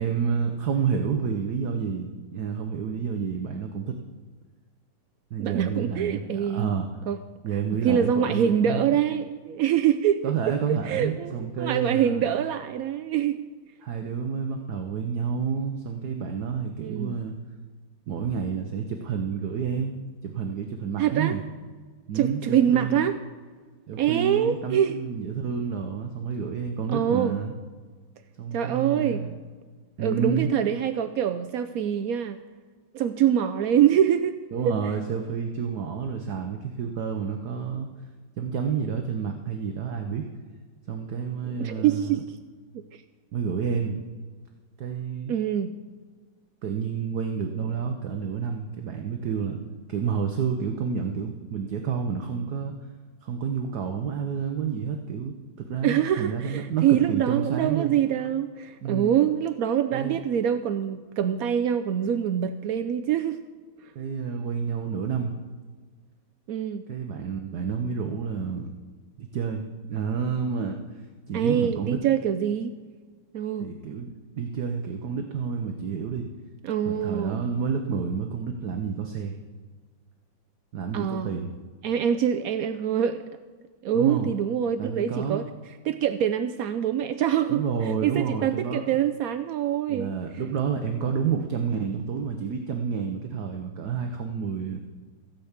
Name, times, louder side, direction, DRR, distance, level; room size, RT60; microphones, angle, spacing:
voice 1, 0.0-4.0 5.3-6.9 7.4-9.0 10.2-12.2 13.8-17.3 18.1-19.9 20.2-21.4 22.1-23.1 23.9-27.5 28.4-29.4 30.0-30.5 34.5-37.9 38.4-40.2 40.9-42.2 43.3-44.0 44.8-45.3 46.6-49.6 49.9-52.7 53.2-57.9 58.8-59.2 59.9-60.2 63.9-65.4 66.9-68.7 69.2-70.8 71.3-72.0 73.6-74.1 74.4-76.3 76.8-79.4 80.7-81.5 83.9-84.3 84.8-85.4 87.5-88.8 89.9-94.8, right 6 dB, 60° right, 4 dB, 1.4 m, -29 dB
voice 2, 5.4-6.7 7.1-7.2 7.8-10.2 10.7-13.4 16.8-17.2 21.0-21.3 22.1-23.2 24.0-25.0 26.9-27.4 28.5-29.2 30.0-32.4 32.9-34.4 34.6-34.8 41.4-42.4 42.7-43.0 45.3-45.7 55.8-63.4 66.5-66.8 71.3-72.8 73.3-73.7 76.6-77.4 80.9-81.3 81.8-83.2 83.8-85.4 85.8-90.1, right 9 dB, 80° right, 10 dB, 0.8 m, -25 dB
15.5 x 5.8 x 8.2 m, 1.5 s
omnidirectional pair, 2.2 m